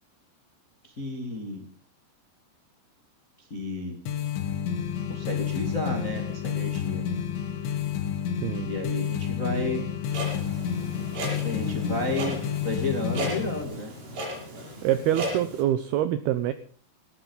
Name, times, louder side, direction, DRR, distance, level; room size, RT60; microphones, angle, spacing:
voice 1, 0.8-1.7 3.5-4.0 5.1-7.0 8.6-9.8 11.4-13.9, left 2 dB, 40° left, 4 dB, 1.1 m, -32 dB
sound 1, 4.1-13.6, left 8 dB, 75° left, 3.9 m, -30 dB
Clock, 10.1-15.6, equal, 60° right, 8.3 m, -35 dB
voice 2, 14.8-16.5, right 12 dB, 80° right, 12 dB, 2.3 m, -25 dB
18.0 x 14.0 x 5.5 m, 0.42 s
omnidirectional pair, 5.5 m